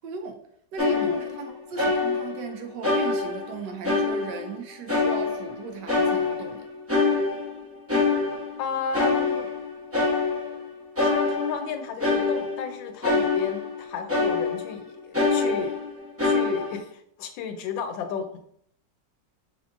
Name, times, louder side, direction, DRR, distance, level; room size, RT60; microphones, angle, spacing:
voice 1, 0.0-0.4 0.7-6.7, right 5 dB, 75° right, 1.2 m, -37 dB
sound 1, 0.8-1.5 1.8-2.5 2.8-4.6 4.9-5.6 5.9-8.6 8.9-10.6 11.0-13.8 14.1-14.8 15.1-16.8, left 3 dB, 15° right, 0.6 m, -25 dB
voice 2, 8.6-9.5 11.0-15.7 16.2-18.3, left 6 dB, 85° left, 1.3 m, -33 dB
5.3 x 3.5 x 2.5 m
omnidirectional pair, 2.0 m